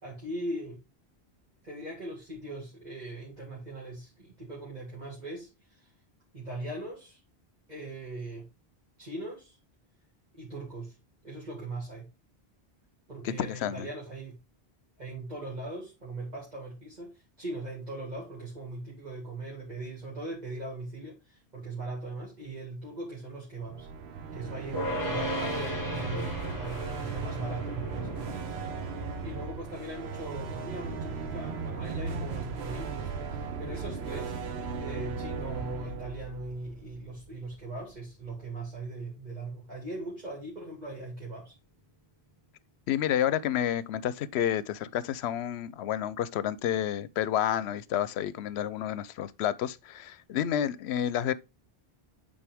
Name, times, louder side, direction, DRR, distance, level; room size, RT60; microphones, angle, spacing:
voice 1, 0.0-0.8 1.6-5.9 6.3-7.2 7.7-8.5 9.0-9.6 10.3-11.0 11.2-12.1 13.1-14.4 15.0-23.9 24.3-28.3 29.2-34.4 34.8-41.5, right 2 dB, 45° right, 2.2 m, -40 dB
voice 2, 13.2-13.9 42.9-51.3, left 10 dB, 90° left, 0.8 m, -30 dB
sound 1, 23.6-37.6, right 5 dB, 85° right, 1.1 m, -37 dB
sound 2, 24.7-36.0, left 1 dB, 20° left, 2.1 m, -39 dB
8.9 x 4.2 x 3.4 m
omnidirectional pair, 1.1 m